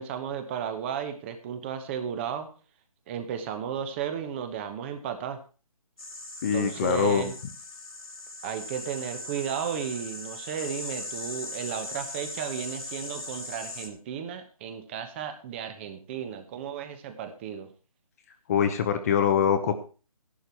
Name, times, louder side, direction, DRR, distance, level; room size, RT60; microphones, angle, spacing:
voice 1, 0.0-2.5 3.1-5.4 6.5-7.3 8.4-17.7, right 8 dB, 20° right, 8 dB, 1.2 m, -34 dB
sound 1, 6.0-13.9, left 1 dB, 75° left, 3.4 m, -39 dB
voice 2, 6.4-7.3 18.5-19.7, left 8 dB, 25° left, 8 dB, 1.0 m, -24 dB
12.0 x 11.5 x 4.5 m, 0.36 s
figure-of-eight pair, 155°, 19 cm